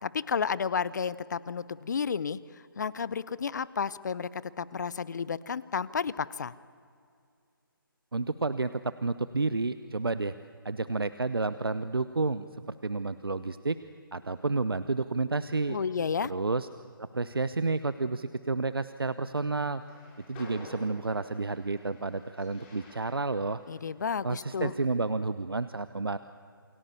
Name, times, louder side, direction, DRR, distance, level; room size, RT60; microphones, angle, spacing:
voice 1, 0.0-2.4 2.8-6.5 15.7-16.3 23.7-24.7, left 6 dB, 50° left, 19 dB, 0.9 m, -32 dB
voice 2, 8.1-10.3 10.6-13.8 14.1-15.8 16.2-16.7 17.0-19.8 20.3-23.6 24.2-26.2, right 3 dB, 80° right, 13 dB, 0.9 m, -30 dB
Train, 19.7-25.0, left 2 dB, 25° left, 6.1 m, -52 dB
28.5 x 21.5 x 7.1 m, 2.3 s
figure-of-eight pair, 145°, 12 cm